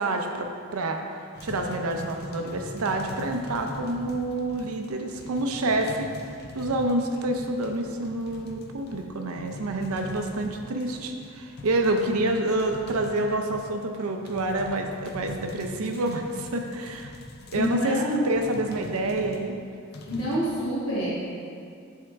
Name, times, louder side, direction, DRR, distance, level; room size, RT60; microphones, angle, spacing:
voice 1, 0.0-6.1 6.5-17.1 17.5-18.0 18.2-19.6, right 2 dB, 75° right, 4 dB, 0.6 m, -28 dB
sound 1, 1.3-19.4 19.9-20.5, left 2 dB, 45° left, 0.5 m, -42 dB
voice 2, 17.6-18.3 20.1-21.1, equal, 85° left, -8 dB, 1.2 m, -27 dB
7.5 x 3.7 x 3.5 m, 2.3 s
head